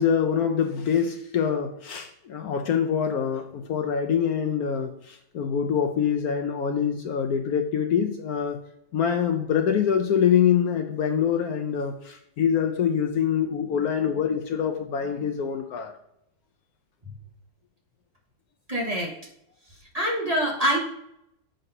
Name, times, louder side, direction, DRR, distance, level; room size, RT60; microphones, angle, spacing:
voice 1, 0.0-8.6 8.9-15.9, left 8 dB, 65° left, 4 dB, 1.1 m, -25 dB
voice 2, 18.7-19.1 19.9-20.8, equal, 25° right, -2 dB, 1.3 m, -24 dB
7.8 x 3.9 x 5.4 m, 0.78 s
omnidirectional pair, 1.8 m